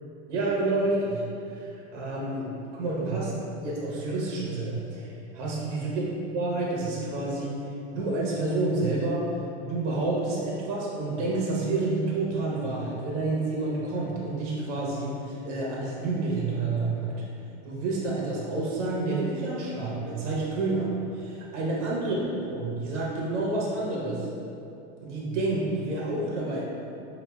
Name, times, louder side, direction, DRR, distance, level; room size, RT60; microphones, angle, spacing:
voice 1, 0.3-3.3 3.6-6.0 6.3-7.6 7.9-9.3 9.6-17.1 17.6-24.3 25.0-26.6, right 2 dB, 85° right, -5 dB, 1.0 m, -29 dB
4.9 x 2.4 x 2.3 m, 2.7 s
supercardioid pair, 155°, 35 cm